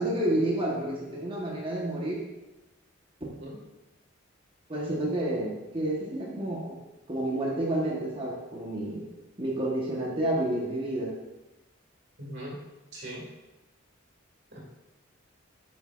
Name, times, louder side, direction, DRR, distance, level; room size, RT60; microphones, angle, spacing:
voice 1, 0.0-2.2 4.7-6.8 7.1-9.0 9.4-11.1, right 1 dB, 25° right, -3 dB, 1.2 m, -29 dB
voice 2, 12.2-12.6 12.9-13.2 14.5-14.6, right 1 dB, 60° right, -4 dB, 2.3 m, -39 dB
8.8 x 6.3 x 2.5 m, 1.0 s
head